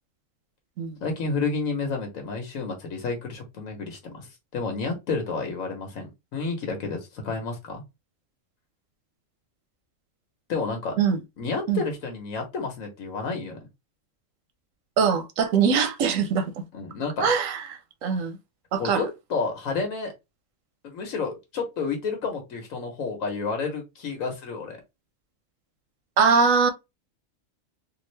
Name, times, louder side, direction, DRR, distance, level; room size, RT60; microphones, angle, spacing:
voice 1, 1.0-7.8 10.5-10.9 11.4-13.6 16.7-17.3 18.8-20.1 20.8-24.8, left 4 dB, 90° left, 1.4 m, -30 dB
voice 2, 15.0-16.5 17.2-17.6 18.0-18.4 18.7-19.1 26.2-26.7, right 6 dB, 90° right, 1.1 m, -22 dB
3.7 x 2.4 x 3.2 m
omnidirectional pair, 1.3 m